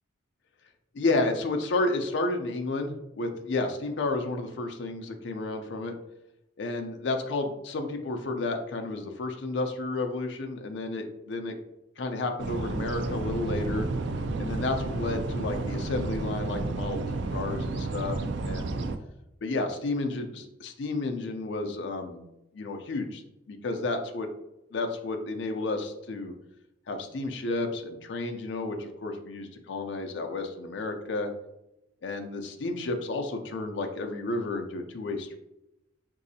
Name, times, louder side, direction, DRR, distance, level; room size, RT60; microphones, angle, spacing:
voice 1, 0.9-5.9 6.6-11.5 12.0-13.9 14.4-17.0 17.3-18.2 18.4-18.8 19.4-22.2 22.5-23.2 23.5-24.3 24.7-26.3 26.9-31.3 32.0-35.4, left 2 dB, 65° left, 5 dB, 0.4 m, -31 dB
sound 1, 12.4-19.0, right 3 dB, 65° right, 0.3 m, -31 dB
4.0 x 2.7 x 2.6 m, 0.88 s
head